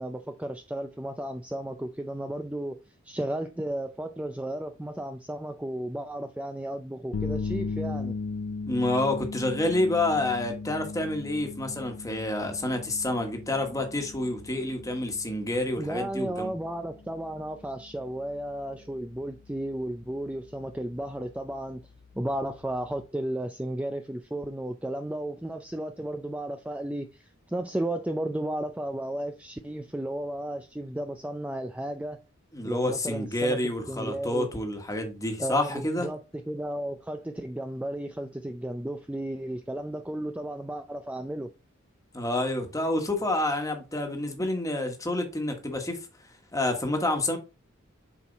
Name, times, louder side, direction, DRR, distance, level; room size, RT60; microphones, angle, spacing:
voice 1, 0.0-8.1 15.8-21.8 22.2-32.2 32.6-33.6 33.9-34.5 35.4-36.2 36.5-41.5, right 1 dB, 5° right, 0.4 m, -34 dB
sound 1, 7.1-23.0, left 4 dB, 70° left, 0.4 m, -39 dB
voice 2, 8.7-16.5 32.5-36.1 42.1-46.0 46.5-47.4, left 1 dB, 15° left, 1.4 m, -28 dB
7.1 x 4.6 x 4.1 m
head